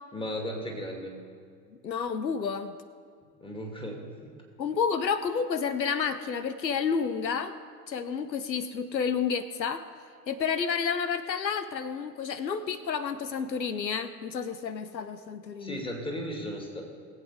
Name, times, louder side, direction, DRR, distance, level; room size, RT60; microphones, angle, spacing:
voice 1, 0.1-1.1 3.4-4.0 15.6-16.8, equal, 10° left, 1 dB, 2.5 m, -35 dB
voice 2, 1.8-2.8 4.6-7.5 7.9-9.8 10.3-15.8, left 6 dB, 90° left, 12 dB, 0.7 m, -30 dB
19.5 x 8.1 x 4.8 m, 2.3 s
figure-of-eight pair, 80°, 50 cm